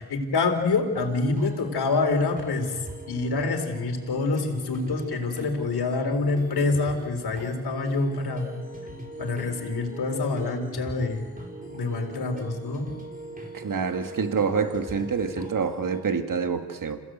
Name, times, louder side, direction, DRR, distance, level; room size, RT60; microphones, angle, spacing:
voice 1, 0.0-2.7 3.1-8.5 9.2-11.2 11.6-12.9, left 3 dB, 65° left, 4 dB, 3.9 m, -26 dB
sound 1, 0.9-16.0, right 2 dB, 20° right, 4.4 m, -41 dB
voice 2, 13.5-17.0, right 5 dB, 50° right, 7 dB, 2.3 m, -27 dB
27.0 x 16.5 x 8.2 m, 1.4 s
cardioid pair, 65°, 41 cm